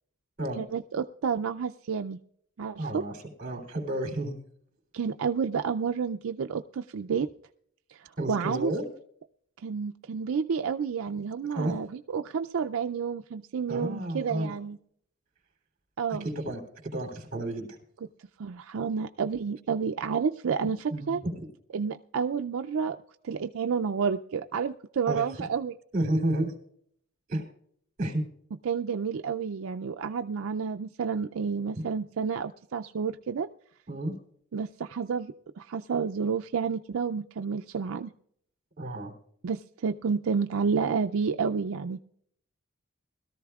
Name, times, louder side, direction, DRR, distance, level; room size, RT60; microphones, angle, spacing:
voice 1, 0.6-2.2 2.6-3.0 4.9-7.3 7.9-8.7 9.6-14.8 16.0-16.3 18.4-21.2 21.7-23.0 23.2-25.7 28.6-33.5 34.5-38.1 39.4-42.0, right 6 dB, 75° right, 7 dB, 0.4 m, -30 dB
voice 2, 2.8-3.1 3.4-4.4 8.2-8.8 11.5-11.8 13.7-14.5 16.1-17.8 20.9-21.5 25.1-25.2 25.9-26.5 27.3-27.4 28.0-28.2 33.9-34.2 38.8-39.1, right 1 dB, 40° right, 3 dB, 3.1 m, -31 dB
21.0 x 13.5 x 2.3 m, 0.66 s
head